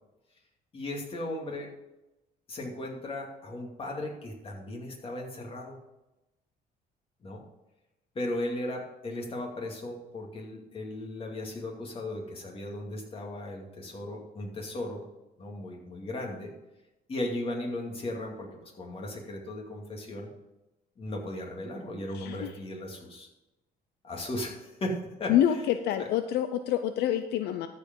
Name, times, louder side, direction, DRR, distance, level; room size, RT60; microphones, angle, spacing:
voice 1, 0.7-1.7 2.5-5.8 7.2-7.4 8.1-15.0 15.4-16.5 17.1-20.3 21.0-23.3 24.0-25.3 26.0-26.1, left 1 dB, 35° left, 0 dB, 2.5 m, -36 dB
voice 2, 22.1-22.5 25.3-27.7, left 11 dB, 75° left, 9 dB, 0.6 m, -27 dB
13.5 x 5.0 x 5.4 m, 0.98 s
cardioid pair, 110°, 17 cm